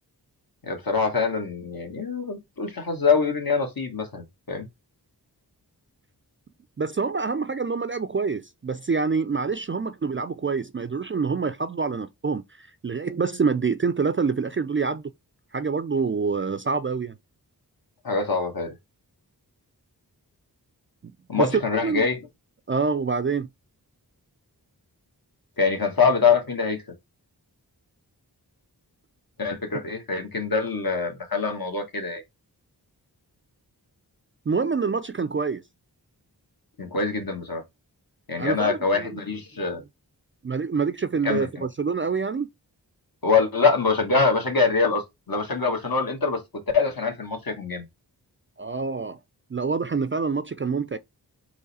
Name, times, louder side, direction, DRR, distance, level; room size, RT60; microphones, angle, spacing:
voice 1, 0.6-4.7 18.0-18.7 21.3-22.2 25.6-26.8 29.4-32.2 36.8-37.6 38.3-39.8 41.2-41.7 43.2-46.4 46.7-47.9, left 4 dB, 55° left, 1.5 m, -24 dB
voice 2, 6.8-15.0 15.5-17.1 21.4-21.5 21.8-22.1 22.7-23.5 34.5-35.6 38.4-39.2 40.4-42.5 48.6-49.2 49.5-51.0, right 5 dB, 30° right, 0.4 m, -26 dB
3.9 x 3.1 x 4.0 m
wide cardioid pair, 50°, 41 cm